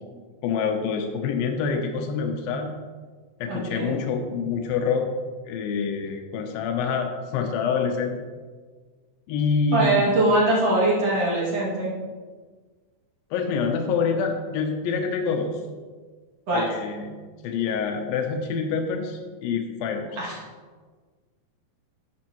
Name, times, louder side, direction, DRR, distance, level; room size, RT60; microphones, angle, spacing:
voice 1, 0.4-2.7 3.4-5.1 5.5-8.1 9.3-10.1 13.3-15.6 16.5-17.1 17.4-20.1, left 5 dB, 85° left, 3 dB, 2.5 m, -26 dB
voice 2, 3.5-4.0 9.7-11.9 16.5-16.7 20.2-20.4, right 2 dB, 50° right, -6 dB, 3.0 m, -22 dB
10.5 x 7.1 x 3.0 m, 1.5 s
omnidirectional pair, 4.0 m